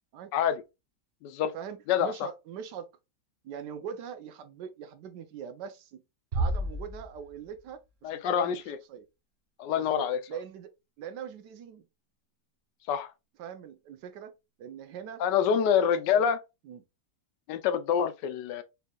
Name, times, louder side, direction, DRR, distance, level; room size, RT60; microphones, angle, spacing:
voice 1, 0.3-0.6 1.2-1.5 1.9-2.3 8.0-8.8 9.6-10.2 12.9-13.1 15.2-16.4 17.5-18.6, left 8 dB, 80° left, 1.2 m, -26 dB
voice 2, 1.5-2.9 3.4-6.0 6.3-8.5 8.9-9.1 9.7-10.7 11.0-11.9 13.4-14.3 14.6-15.9 16.1-16.3 16.6-16.8, right 8 dB, 75° right, 1.3 m, -42 dB
Bass drum, 6.3-7.7, right 1 dB, 45° right, 0.9 m, -32 dB
4.6 x 3.3 x 2.3 m
omnidirectional pair, 1.9 m